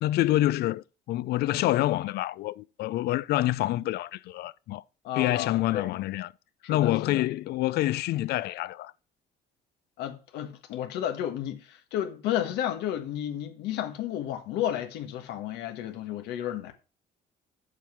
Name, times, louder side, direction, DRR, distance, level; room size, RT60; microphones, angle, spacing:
voice 1, 0.0-4.8 5.2-6.3 6.7-8.9, left 15 dB, 70° left, 0.4 m, -27 dB
voice 2, 5.0-5.9 6.6-7.2 10.0-16.7, left 11 dB, 90° left, 1.4 m, -32 dB
7.4 x 5.5 x 6.0 m
cardioid pair, 110°, 17 cm